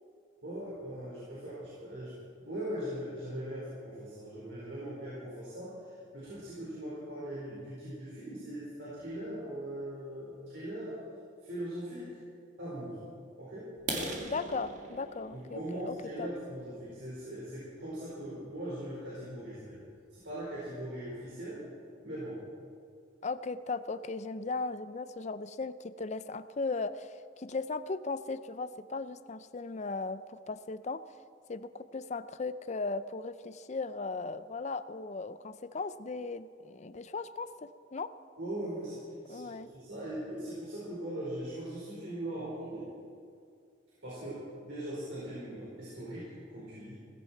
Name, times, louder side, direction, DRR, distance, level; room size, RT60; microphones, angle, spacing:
voice 1, 0.4-2.1 2.4-11.0 11.4-12.2 12.6-13.0 13.4-13.7 15.3-19.8 20.1-21.6 22.0-22.4 38.4-39.0 39.2-42.9 44.0-46.9, right 1 dB, 70° right, -9 dB, 4.9 m, -40 dB
sound 1, 13.8-17.5 18.1-18.3 18.7-18.8 19.2-19.4 19.7-19.8 20.3-20.4 20.6-21.1, right 2 dB, 40° right, 2.0 m, -41 dB
voice 2, 14.2-16.3 23.2-31.0 31.5-38.1 39.3-39.7, left 3 dB, 35° left, 13 dB, 0.5 m, -37 dB
17.0 x 15.5 x 4.6 m, 2.3 s
head